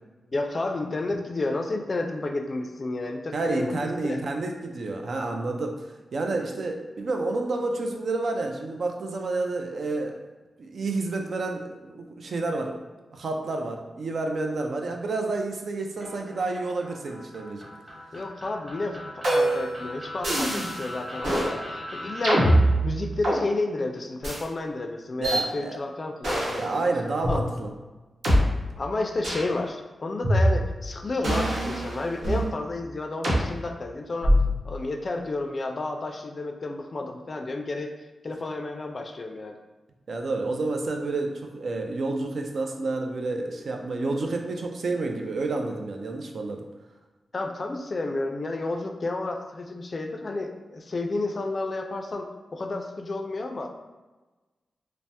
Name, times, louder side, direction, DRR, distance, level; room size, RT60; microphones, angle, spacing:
voice 1, 0.3-4.2 18.1-26.8 27.3-27.4 28.8-34.3 34.6-37.9 38.2-39.6 47.3-53.7, left 2 dB, 45° left, 4 dB, 0.3 m, -31 dB
voice 2, 3.3-10.2 10.6-12.8 13.1-17.7 25.2-25.8 26.6-27.7 40.1-46.6, right 3 dB, 70° right, 3 dB, 0.4 m, -29 dB
sound 1, 16.0-22.5, left 1 dB, 5° right, 0.9 m, -40 dB
sound 2, 19.2-19.7 20.2-20.8 21.2-21.5 22.2-23.4 24.2-24.4 25.2-25.4 26.2-26.7 27.2-27.3 28.2-28.4 29.2-29.5 30.2-30.8 31.2-32.5 33.2-33.4 34.2-34.6, right 1 dB, 85° right, 0.9 m, -23 dB
3.2 x 2.0 x 2.7 m, 1.2 s
wide cardioid pair, 85°, 0 cm